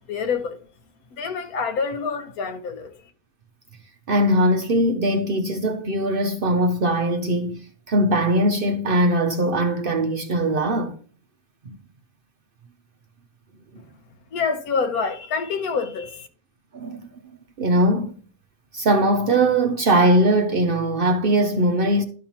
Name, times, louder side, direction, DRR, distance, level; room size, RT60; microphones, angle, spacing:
voice 1, 0.1-0.6 1.2-2.9 14.3-16.3, left 5 dB, 90° left, 1.4 m, -26 dB
voice 2, 4.1-10.9 11.7-11.8 16.7-17.0 17.6-18.1 18.7-22.0, right 1 dB, 55° right, 0.6 m, -20 dB
12.0 x 5.4 x 2.9 m
omnidirectional pair, 1.5 m